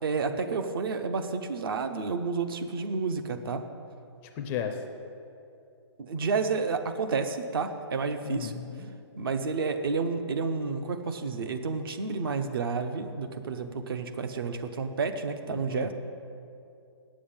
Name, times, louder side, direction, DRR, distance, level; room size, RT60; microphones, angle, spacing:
voice 1, 0.0-3.6 6.0-8.5 9.1-15.9, right 4 dB, 55° right, 8 dB, 0.9 m, -30 dB
voice 2, 4.4-4.8 8.2-8.9 15.5-15.9, left 8 dB, 15° left, 6 dB, 0.4 m, -35 dB
8.9 x 7.4 x 8.8 m, 2.6 s
hypercardioid pair, 160°, 15 cm